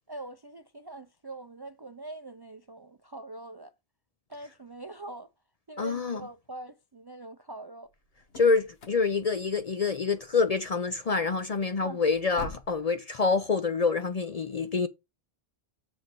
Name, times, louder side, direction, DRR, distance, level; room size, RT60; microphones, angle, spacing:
voice 1, 0.1-3.7 4.3-5.3 5.7-7.9 11.8-12.0, right 2 dB, 40° right, 0.3 m, -43 dB
voice 2, 5.8-6.2 8.4-14.9, left 4 dB, 50° left, 0.5 m, -26 dB
sound 1, 7.9-12.8, left 1 dB, 65° left, 1.3 m, -48 dB
7.1 x 3.9 x 5.9 m
omnidirectional pair, 1.1 m